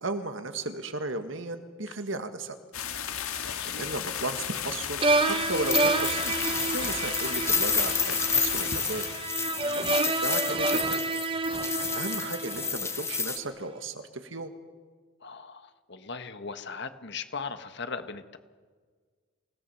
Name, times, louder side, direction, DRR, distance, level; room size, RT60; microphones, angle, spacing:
voice 1, 0.0-2.6 3.4-6.3 6.7-9.1 9.9-11.0 11.7-14.5, right 2 dB, 60° right, 8 dB, 1.8 m, -35 dB
sound 1, 2.7-9.3, left 8 dB, 85° left, 1.9 m, -34 dB
voice 2, 3.4-3.9 9.6-9.9 15.2-18.4, left 5 dB, 55° left, 10 dB, 1.4 m, -39 dB
sound 2, 5.0-13.2, right 3 dB, 25° right, 1.0 m, -29 dB
sound 3, 5.6-13.4, left 5 dB, 10° left, 1.1 m, -30 dB
28.5 x 17.5 x 7.1 m, 1.5 s
head